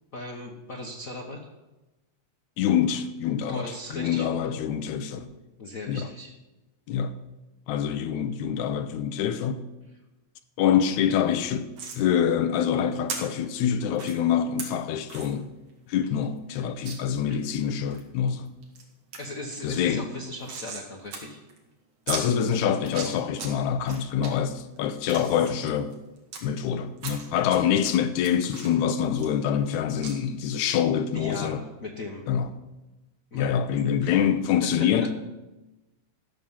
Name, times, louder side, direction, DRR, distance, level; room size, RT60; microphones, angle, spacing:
voice 1, 0.1-1.4 3.5-4.3 5.6-6.3 17.3-17.4 19.2-21.4 22.9-23.1 31.1-32.2 33.3-33.5 34.0-34.2 34.6-34.9, left 2 dB, 55° left, 0.9 m, -38 dB
voice 2, 2.6-5.3 5.9-6.1 6.9-7.1 7.7-9.7 10.6-15.5 15.9-18.5 19.6-20.1 22.1-25.9 26.4-31.6 32.3-32.5 33.3-35.1, left 8 dB, 90° left, 2.1 m, -25 dB
sound 1, 11.8-12.0 13.1-13.2 13.9-14.1 14.6-14.7 15.1-15.3 15.7-15.8 16.0-16.1 16.8-17.0 17.5-18.0 18.5-18.8 19.1-19.2 19.5-20.9 21.1-21.2 21.5-21.6 22.1-22.2 22.8-23.5 23.9-24.3 24.8-26.4 27.0-27.6 27.8-29.7 30.0-30.1, right 5 dB, 70° right, 3.4 m, -37 dB
13.5 x 6.6 x 7.2 m
omnidirectional pair, 3.3 m